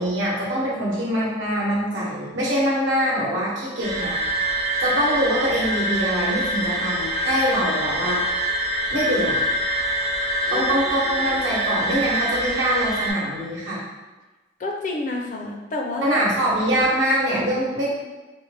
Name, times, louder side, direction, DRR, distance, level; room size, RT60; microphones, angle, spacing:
voice 1, 0.0-4.2 4.8-8.2 8.9-9.5 10.5-13.8 16.0-17.9, equal, 80° right, -6 dB, 1.0 m, -23 dB
Wind instrument woodwind instrument, 2.0-12.9, left 1 dB, 80° left, 0.8 m, -40 dB
sound 1, 3.8-13.1, right 1 dB, 35° right, 0.6 m, -25 dB
voice 2, 10.5-11.3 14.6-16.2, left 2 dB, 40° left, 0 dB, 0.4 m, -30 dB
3.9 x 2.1 x 3.3 m, 1.2 s
head